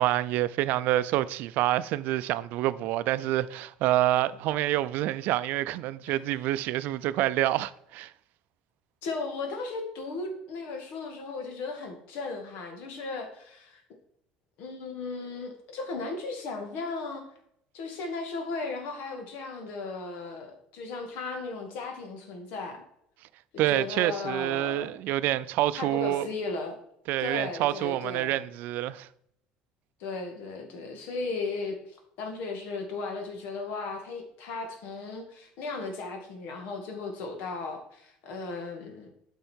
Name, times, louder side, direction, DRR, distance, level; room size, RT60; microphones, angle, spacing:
voice 1, 0.0-8.1 23.6-26.3 27.1-29.1, right 14 dB, 70° right, 0.4 m, -27 dB
voice 2, 9.0-13.8 14.6-17.3 17.7-22.8 23.7-24.9 25.8-26.8 27.2-28.4 30.0-39.1, left 3 dB, 75° left, 1.9 m, -36 dB
8.9 x 5.5 x 4.5 m
supercardioid pair, 100°, 3 cm